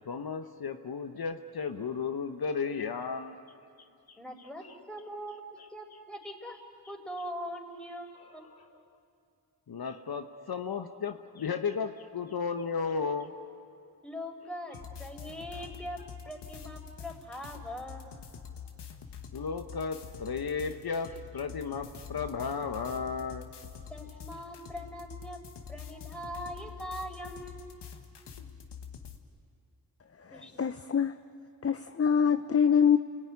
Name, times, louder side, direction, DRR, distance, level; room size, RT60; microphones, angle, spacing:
voice 1, 0.1-3.4 4.1-4.2 9.7-13.3 19.3-23.5, left 5 dB, 65° left, 7 dB, 1.2 m, -34 dB
voice 2, 4.2-5.4 5.7-8.6 14.0-16.0 16.2-18.2 23.9-25.4 25.7-27.8 30.3-30.7, equal, ahead, 2 dB, 4.6 m, -42 dB
sound 1, 14.7-29.2, left 7 dB, 85° left, 1.6 m, -46 dB
voice 3, 30.2-31.1 31.6-33.0, left 7 dB, 35° left, 9 dB, 0.8 m, -25 dB
29.5 x 17.5 x 9.8 m, 2.5 s
cardioid pair, 45°, 40 cm